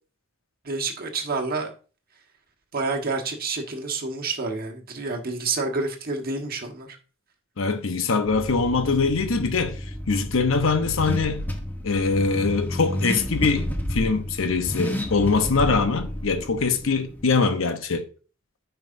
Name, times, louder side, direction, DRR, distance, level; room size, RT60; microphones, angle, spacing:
voice 1, 0.6-1.7 2.7-7.0, right 3 dB, 45° right, 1.4 m, -28 dB
voice 2, 7.6-9.8 10.1-11.4 11.8-18.1, left 4 dB, 75° left, 0.9 m, -23 dB
Car / Accelerating revving vroom, 8.3-17.4, left 1 dB, 10° left, 0.9 m, -31 dB
9.0 x 5.8 x 2.6 m
head